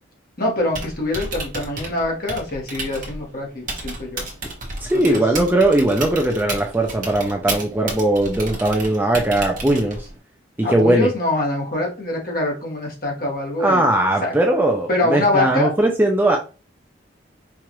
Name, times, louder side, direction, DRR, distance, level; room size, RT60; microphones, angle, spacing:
voice 1, 0.4-4.3 4.9-5.2 10.6-13.9 14.2-14.3 14.9-15.7, left 2 dB, 45° left, -1 dB, 1.3 m, -24 dB
Typing, 0.6-10.2, right 2 dB, 40° right, 1.0 m, -32 dB
voice 2, 4.8-10.1 10.6-11.1 13.6-16.4, right 1 dB, 10° right, 2 dB, 0.4 m, -19 dB
4.6 x 2.5 x 2.9 m, 0.33 s
head